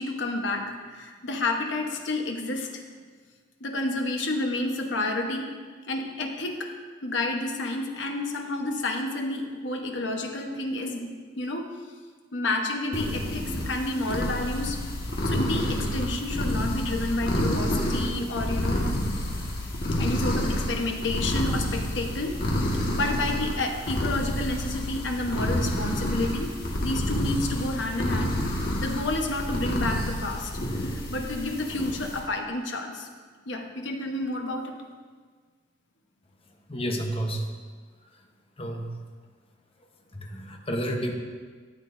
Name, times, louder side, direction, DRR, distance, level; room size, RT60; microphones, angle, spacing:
voice 1, 0.0-2.8 3.6-5.5 5.9-6.7 7.0-11.7 12.3-14.8 15.2-18.9 19.9-22.4 22.7-26.6 26.8-28.4 28.8-30.5 30.8-33.1 33.5-34.7, left 2 dB, 70° left, 2 dB, 1.1 m, -30 dB
sound 1, 12.9-32.2, left 1 dB, 55° left, 1.6 m, -29 dB
voice 2, 36.7-37.5 38.6-38.9 40.1-41.1, equal, 30° left, 2 dB, 1.0 m, -30 dB
12.5 x 8.9 x 2.7 m, 1.5 s
head